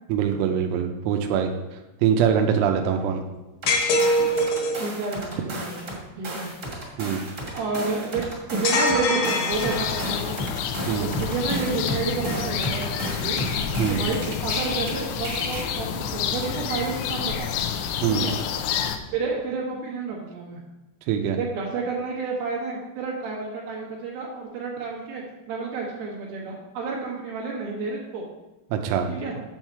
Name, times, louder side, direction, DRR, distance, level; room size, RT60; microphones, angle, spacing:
voice 1, 0.1-1.5 2.0-3.2 7.0-7.2 10.9-11.1 13.8-14.0 18.0-18.3 21.1-21.4 28.7-29.1, right 8 dB, 85° right, 4 dB, 3.4 m, -23 dB
voice 2, 2.7-3.1 4.8-6.8 7.5-8.2 8.5-10.3 10.9-13.4 13.9-17.7 18.1-18.4 19.1-20.6 21.3-25.2 25.5-28.2 29.1-29.4, right 4 dB, 65° right, -2 dB, 2.5 m, -30 dB
sound 1, 3.6-6.0 6.2-14.9 15.2-15.6, equal, 40° right, 1.7 m, -33 dB
sound 2, 3.7-4.8 8.6-10.2, left 1 dB, 65° left, 2.6 m, -23 dB
sound 3, 9.5-19.0, left 8 dB, 85° left, 2.8 m, -29 dB
8.2 x 7.2 x 4.5 m, 1.0 s
omnidirectional pair, 6.0 m